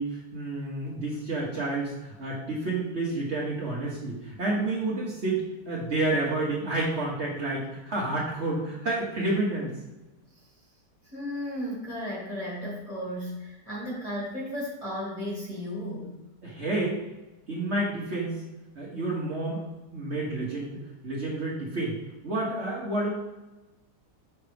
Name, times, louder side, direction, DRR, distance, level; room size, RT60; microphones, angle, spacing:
voice 1, 0.0-9.7 16.4-17.0 17.5-18.4 18.8-19.6 19.9-22.0 22.2-23.1, right 2 dB, 45° right, -5 dB, 1.3 m, -29 dB
voice 2, 11.0-16.2, equal, 20° left, -6 dB, 1.7 m, -34 dB
5.9 x 5.0 x 3.4 m, 1.0 s
omnidirectional pair, 1.9 m